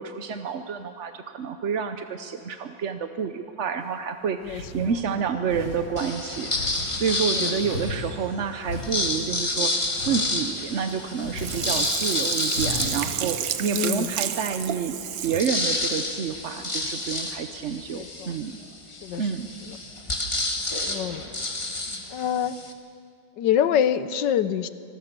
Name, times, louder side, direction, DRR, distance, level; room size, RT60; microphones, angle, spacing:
voice 1, 0.0-15.0 15.2-18.6 19.2-19.5, right 6 dB, 60° right, 8 dB, 0.8 m, -29 dB
sound 1, 3.8-3.9 4.4-4.9 5.4-5.8 6.5-6.9 7.5-8.3 8.6-9.1 9.8-10.2 10.9-11.7 11.9-12.0 12.5-13.0, left 2 dB, 90° left, 6.3 m, -35 dB
sound 2, 6.0-8.1 8.7-13.9 14.4-14.5 14.7-22.7, left 2 dB, 15° left, 1.5 m, -30 dB
Sink (filling or washing), 11.4-15.6 16.0-16.1, right 10 dB, 75° right, 1.6 m, -30 dB
voice 2, 13.6-14.2 17.9-18.3 18.9-19.2 20.9-21.3 22.1-22.6 23.4-24.7, left 9 dB, 70° left, 13 dB, 1.3 m, -25 dB
25.0 x 19.0 x 6.8 m, 2.3 s
omnidirectional pair, 2.1 m